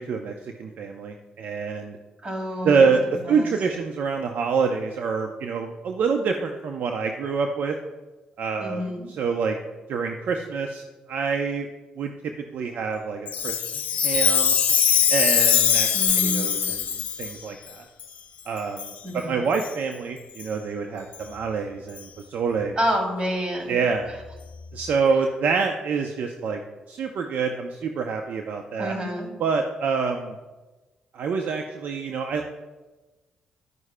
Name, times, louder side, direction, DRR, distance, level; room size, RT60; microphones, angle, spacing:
voice 1, 0.0-2.0 2.6-3.0 3.3-7.7 8.4-9.6 9.9-10.8 11.1-11.7 12.0-12.1 12.5-13.5 14.0-14.5 15.1-17.9 18.5-22.8 23.7-24.1 24.7-26.6 26.9-28.9 29.4-30.4 31.1-32.5, right 5 dB, 70° right, 4 dB, 0.6 m, -26 dB
voice 2, 2.2-2.9 3.2-3.5 8.6-9.1 15.9-16.6 19.0-19.4 22.8-23.8 28.8-29.3, equal, 35° right, 1 dB, 3.0 m, -28 dB
Chime, 13.3-17.3 18.0-18.1 18.8-19.0 19.5-19.7 20.4-20.5 21.1-21.2 22.0-22.1, left 8 dB, 65° left, 0.8 m, -22 dB
11.0 x 9.4 x 2.2 m, 1.2 s
supercardioid pair, 65°, 3 cm